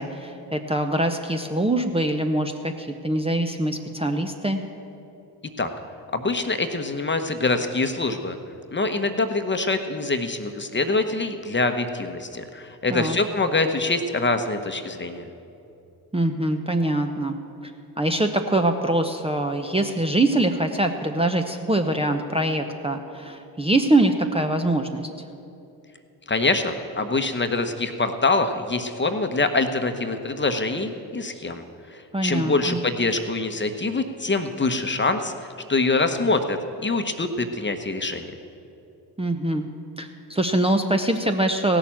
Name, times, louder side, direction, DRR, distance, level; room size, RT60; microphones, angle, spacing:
voice 1, 0.0-4.6 12.9-13.2 16.1-17.4 17.6-17.7 18.0-25.1 32.1-32.8 39.2-39.7 40.0-41.8, right 1 dB, 10° right, 4 dB, 0.9 m, -23 dB
voice 2, 6.1-8.4 8.7-15.3 26.3-31.6 31.9-38.3, left 3 dB, 25° left, 7 dB, 1.1 m, -25 dB
16.5 x 6.9 x 7.4 m, 2.8 s
hypercardioid pair, 50°, 48 cm